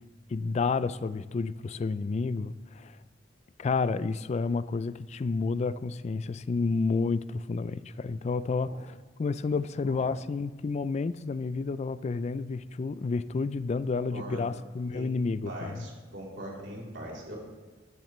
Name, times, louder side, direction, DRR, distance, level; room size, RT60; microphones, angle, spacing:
voice 1, 0.3-3.0 3.6-15.9, left 4 dB, 35° left, 16 dB, 0.3 m, -30 dB
voice 2, 9.8-10.2 14.1-14.4 14.9-15.1 15.4-17.4, right 1 dB, 75° right, -4 dB, 3.2 m, -41 dB
13.5 x 10.5 x 3.1 m, 1.3 s
head